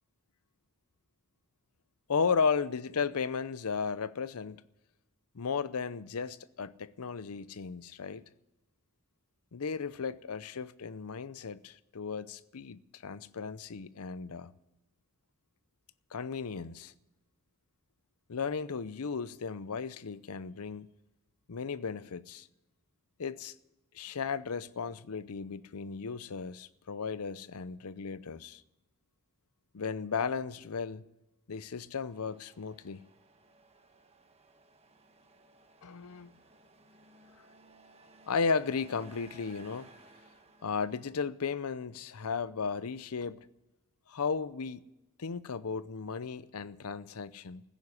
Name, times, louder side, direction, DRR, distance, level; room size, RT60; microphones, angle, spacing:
voice 1, 2.1-4.6 5.3-8.2 9.5-14.5 16.1-16.9 18.3-20.9 21.5-22.5 23.2-23.5 23.9-28.6 29.7-31.0 31.5-33.0 35.8-36.3 38.3-39.9 40.6-43.5 44.1-44.8 45.2-47.6, left 5 dB, 75° left, 0.6 m, -35 dB
Truck, 32.1-41.1, right 2 dB, 30° right, 1.3 m, -59 dB
15.5 x 9.2 x 9.8 m
head